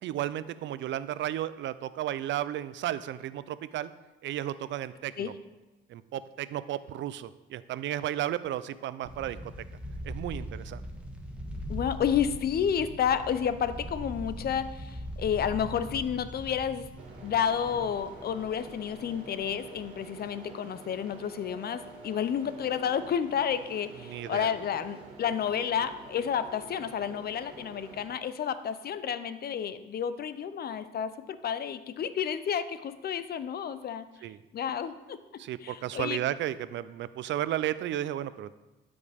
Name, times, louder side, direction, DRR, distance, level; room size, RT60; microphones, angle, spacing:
voice 1, 0.0-3.9 4.2-5.3 5.9-9.5 10.0-10.8 24.0-24.5 34.2-34.4 35.4-38.5, right 12 dB, 70° right, 15 dB, 0.4 m, -33 dB
sound 1, 9.0-20.5 20.9-21.0 21.5-22.3 22.6-22.8 23.1-24.4 24.7-25.0, equal, 5° right, 1.3 m, -41 dB
voice 2, 11.7-16.9 17.2-34.1 34.5-35.2 35.6-36.2, left 8 dB, 50° left, 13 dB, 0.5 m, -31 dB
sound 2, 17.0-28.1, right 3 dB, 85° right, 1.9 m, -48 dB
12.0 x 5.2 x 3.4 m, 1.1 s
cardioid pair, 90°, 20 cm